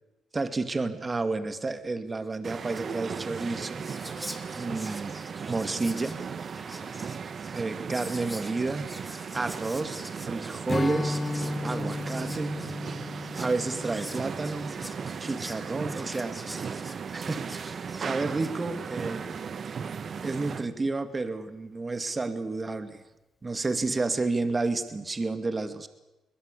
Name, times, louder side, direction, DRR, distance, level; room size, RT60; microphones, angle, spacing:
voice 1, 0.3-3.8 4.5-5.1 5.5-6.2 7.5-8.9 9.3-11.2 11.6-12.6 13.4-14.8 15.2-16.7 17.1-19.3 20.2-23.0 23.4-25.9, right 3 dB, 25° right, 10 dB, 2.3 m, -31 dB
Whispering, 2.3-2.4 2.6-18.6, equal, 5° right, 2.4 m, -46 dB
sound 1, 2.4-20.7, right 6 dB, 50° right, 1.5 m, -37 dB
Strum, 10.7-16.1, left 2 dB, 25° left, 0.9 m, -35 dB
22.0 x 20.5 x 8.4 m, 1.0 s
cardioid pair, 90°, 0 cm